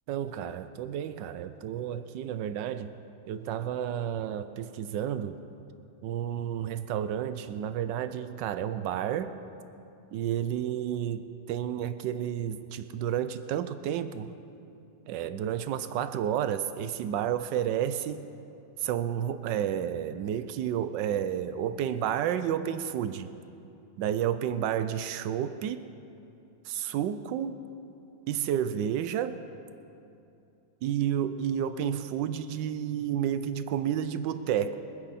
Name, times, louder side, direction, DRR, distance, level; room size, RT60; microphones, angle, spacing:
voice 1, 0.1-2.9 3.3-5.4 6.0-9.3 10.1-14.3 15.1-18.3 18.8-23.3 24.0-25.8 26.7-27.5 28.3-29.4 30.8-34.7, right 10 dB, 85° right, 11 dB, 1.3 m, -31 dB
23.5 x 10.5 x 4.2 m, 2.7 s
omnidirectional pair, 1.9 m